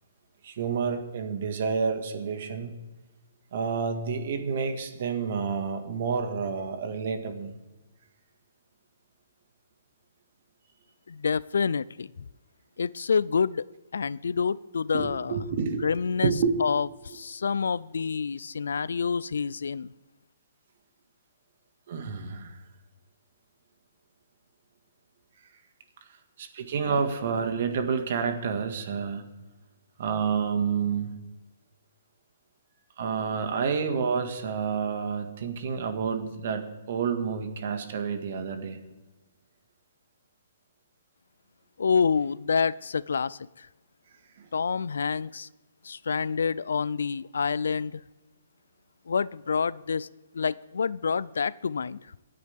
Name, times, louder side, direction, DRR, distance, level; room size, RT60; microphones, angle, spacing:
voice 1, 0.4-2.8 3.5-7.5 14.9-15.9 16.2-16.5 21.9-22.6 26.4-29.2 30.0-31.1 33.0-38.8 44.4-44.5, right 6 dB, 50° right, 6 dB, 1.8 m, -29 dB
voice 2, 11.1-12.1 12.8-13.7 13.9-15.4 15.8-16.3 16.6-19.9 41.8-43.7 44.5-45.5 45.8-48.0 49.1-50.1 50.3-52.0, left 5 dB, 90° left, 21 dB, 0.4 m, -27 dB
26.5 x 9.5 x 3.6 m, 1.1 s
hypercardioid pair, 170°, 0 cm